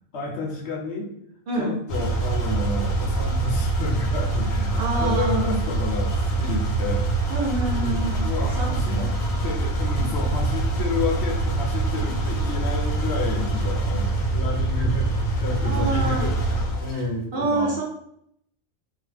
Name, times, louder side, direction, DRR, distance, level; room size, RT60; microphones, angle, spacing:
voice 1, 0.1-1.1 1.6-7.0 7.6-9.1 9.4-15.1 15.4-17.8, left 3 dB, 65° left, 1 dB, 0.8 m, -30 dB
voice 2, 1.5-1.8 4.8-5.5 7.3-9.1 15.6-16.3 16.9-17.1 17.3-17.8, right 2 dB, 55° right, -2 dB, 0.8 m, -27 dB
sound 1, 1.9-17.0, right 2 dB, 85° left, 1.1 m, -24 dB
2.9 x 2.1 x 3.2 m, 0.71 s
omnidirectional pair, 1.3 m